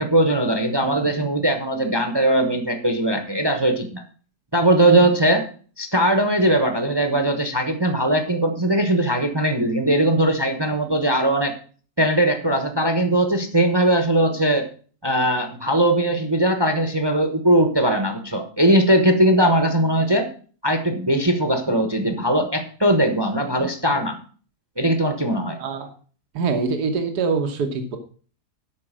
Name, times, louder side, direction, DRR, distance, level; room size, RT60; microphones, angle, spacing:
voice 1, 0.0-4.0 4.5-5.5 5.8-11.5 12.0-14.7 15.0-20.3 20.6-24.2 24.8-25.6, right 1 dB, 20° right, 6 dB, 1.0 m, -20 dB
voice 2, 26.3-28.0, right 4 dB, 80° right, 5 dB, 1.7 m, -24 dB
8.6 x 6.0 x 7.4 m, 0.42 s
omnidirectional pair, 1.7 m